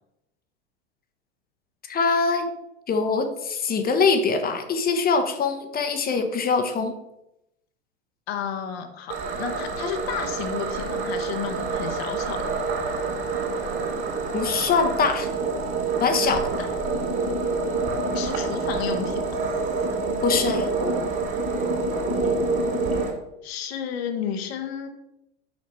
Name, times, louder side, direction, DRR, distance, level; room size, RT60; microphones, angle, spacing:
voice 1, 1.9-2.5 2.9-7.0 14.3-15.3 16.0-16.4 20.2-20.7, left 4 dB, 25° left, 6 dB, 1.0 m, -23 dB
voice 2, 8.3-12.4 16.2-16.8 18.1-19.4 23.4-24.9, left 8 dB, 60° left, 6 dB, 1.2 m, -32 dB
sound 1, 9.1-23.1, right 3 dB, 40° right, 2.5 m, -27 dB
6.5 x 5.7 x 4.3 m, 0.87 s
hypercardioid pair, 90°, 34 cm